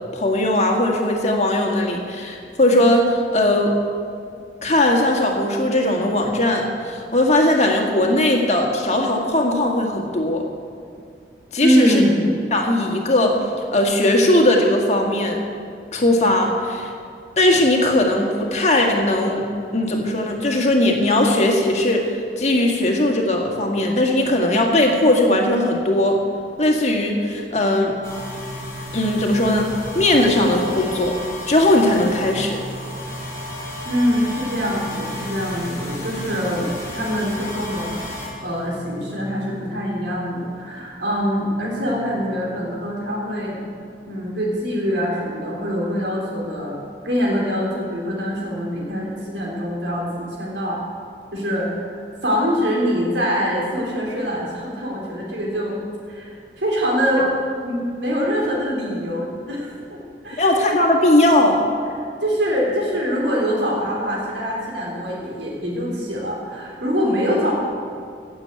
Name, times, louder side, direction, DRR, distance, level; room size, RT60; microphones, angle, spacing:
voice 1, 0.1-3.8 4.6-10.4 11.5-12.0 12.5-13.4 13.7-15.4 15.9-16.9 17.4-19.5 19.7-26.2 26.6-27.9 28.9-29.7 29.9-31.2 31.5-32.6 57.2-57.3 60.4-61.6, left 1 dB, 40° left, 1 dB, 1.9 m, -18 dB
voice 2, 11.6-12.3 33.8-38.0 38.4-43.6 44.1-46.8 47.0-50.8 51.3-55.8 56.1-57.3 57.6-60.6 62.2-67.5, equal, 90° right, -3 dB, 3.5 m, -24 dB
sound 1, 28.0-40.7 41.0-43.5, left 1 dB, 15° left, 2.9 m, -34 dB
16.5 x 7.3 x 8.1 m, 2.4 s
head